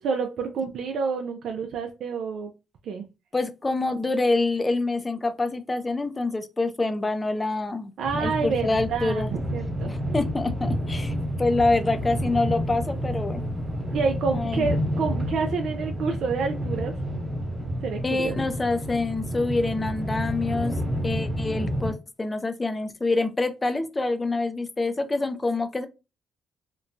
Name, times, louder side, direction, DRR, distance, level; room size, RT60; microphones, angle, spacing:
voice 1, 0.0-2.5 2.9-3.0 8.0-9.2 9.5-9.9 13.9-16.9 17.8-18.4, right 5 dB, 70° right, 0.4 m, -28 dB
voice 2, 3.3-9.3 9.9-13.4 14.3-14.7 18.0-20.7 21.0-25.9, left 3 dB, 20° left, 0.4 m, -26 dB
sound 1, 8.0-21.9, equal, 30° right, 1.0 m, -29 dB
2.9 x 2.2 x 2.5 m
cardioid pair, 90°, 0 cm